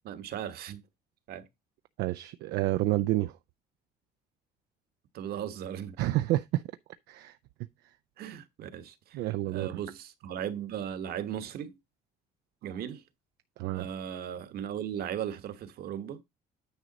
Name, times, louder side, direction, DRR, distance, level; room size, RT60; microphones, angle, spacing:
voice 1, 0.0-0.8 1.3-1.4 5.1-6.2 8.2-11.7 12.6-13.0 13.7-16.2, right 9 dB, 65° right, 1.2 m, -37 dB
voice 2, 2.0-3.3 6.0-6.6 7.1-7.4 9.1-9.8 13.6-13.9, right 16 dB, 85° right, 0.5 m, -29 dB
9.5 x 5.0 x 4.0 m
cardioid pair, 110°, 17 cm